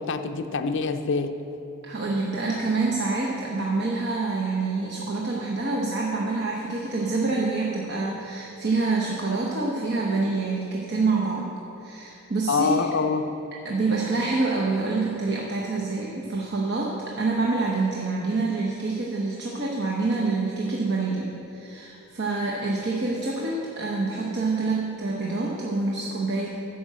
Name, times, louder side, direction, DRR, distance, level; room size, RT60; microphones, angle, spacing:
voice 1, 0.0-1.4 12.5-13.3, left 4 dB, 55° left, 7 dB, 0.5 m, -25 dB
voice 2, 1.8-11.6 11.8-12.9 13.6-26.5, right 3 dB, 55° right, -3 dB, 0.9 m, -26 dB
9.5 x 6.0 x 7.4 m, 3.0 s
head